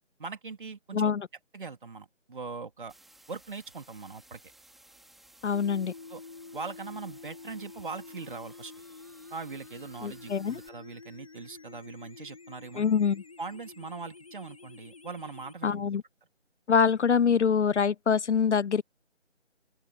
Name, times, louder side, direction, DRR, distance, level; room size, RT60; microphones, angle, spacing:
voice 1, 0.2-1.1 1.5-2.9 3.3-4.4 6.1-6.2 6.5-8.7 9.3-12.9 13.4-16.0, right 4 dB, 40° right, 3.2 m, -41 dB
voice 2, 0.9-1.3 5.4-5.9 10.0-10.6 12.8-13.2 15.6-16.0 16.7-18.8, left 6 dB, 65° left, 0.5 m, -25 dB
sound 1, 2.9-10.7, right 1 dB, ahead, 2.3 m, -57 dB
sound 2, 5.5-15.5, left 4 dB, 25° left, 1.2 m, -49 dB
open air
figure-of-eight pair, 160°, 37 cm